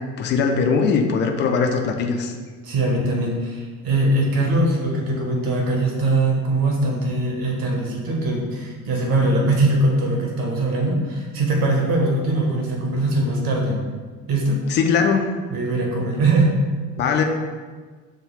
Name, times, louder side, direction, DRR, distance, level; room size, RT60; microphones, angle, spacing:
voice 1, 0.2-2.3 14.7-15.3 17.0-17.2, left 5 dB, 25° left, 3 dB, 0.3 m, -20 dB
voice 2, 2.6-13.8 14.3-14.6 15.5-16.5, right 2 dB, 45° right, -1 dB, 1.2 m, -21 dB
6.3 x 2.3 x 3.2 m, 1.5 s
figure-of-eight pair, 55°, 50 cm